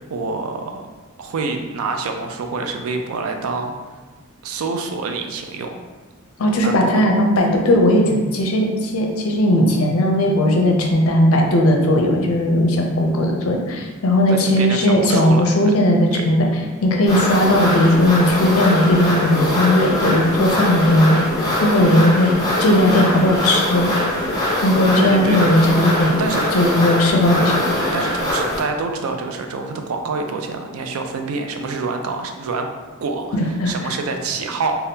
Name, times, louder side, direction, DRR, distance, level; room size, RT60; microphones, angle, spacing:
voice 1, 0.1-0.8 1.2-3.7 4.4-5.7 6.6-7.1 14.3-15.5 16.1-16.3 25.0-25.5 26.2-26.4 27.9-32.7 33.0-34.8, right 4 dB, 80° right, 4 dB, 0.4 m, -26 dB
voice 2, 6.4-16.5 16.8-22.3 22.6-23.9 24.6-26.1 26.5-27.6 33.3-33.7, left 1 dB, 80° left, 1 dB, 0.5 m, -17 dB
sound 1, 17.1-28.6, left 1 dB, 20° left, 0.8 m, -22 dB
3.4 x 2.2 x 2.7 m, 1.3 s
head